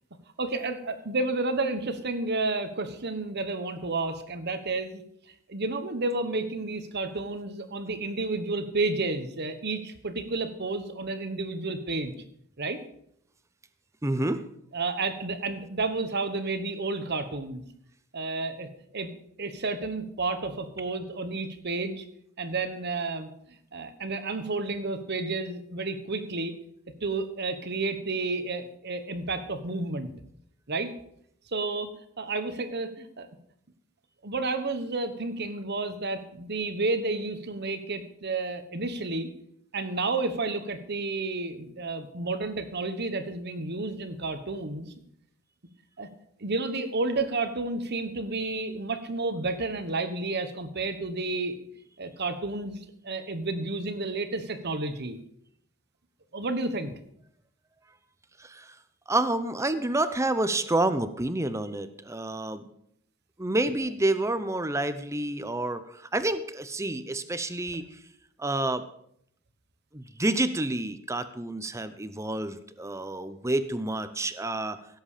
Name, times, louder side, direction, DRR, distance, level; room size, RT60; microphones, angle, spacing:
voice 1, 0.4-5.0 5.5-12.1 12.6-12.8 14.7-17.6 18.1-19.1 19.4-22.0 22.4-23.3 23.7-26.5 27.0-30.1 30.7-30.9 31.5-31.9 32.2-33.3 34.2-39.3 39.7-44.9 46.0-46.1 46.4-51.6 52.0-52.8 53.0-55.2 56.3-56.9, right 3 dB, 50° right, 9 dB, 1.3 m, -31 dB
voice 2, 14.0-14.5 58.4-58.8 59.1-62.7 63.4-68.0 68.4-68.8 69.9-74.8, right 2 dB, 15° right, 12 dB, 0.7 m, -29 dB
16.5 x 8.0 x 5.0 m, 0.71 s
head